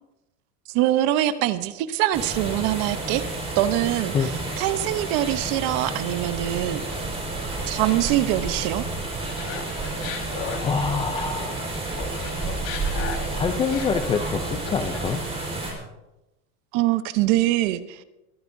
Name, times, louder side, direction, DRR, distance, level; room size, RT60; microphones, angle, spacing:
voice 1, 0.7-3.2 3.6-6.8 7.7-8.8 16.7-18.0, right 14 dB, 45° right, 13 dB, 0.9 m, -23 dB
sound 1, 2.1-15.7, right 2 dB, 15° right, 4.3 m, -30 dB
Laughter, 9.4-11.6 11.9-15.2, left 6 dB, 65° left, 4.2 m, -36 dB
voice 2, 10.6-11.5 13.3-15.2, left 6 dB, 15° left, 7 dB, 0.4 m, -25 dB
22.5 x 13.0 x 2.7 m, 0.99 s
supercardioid pair, 140°, 42 cm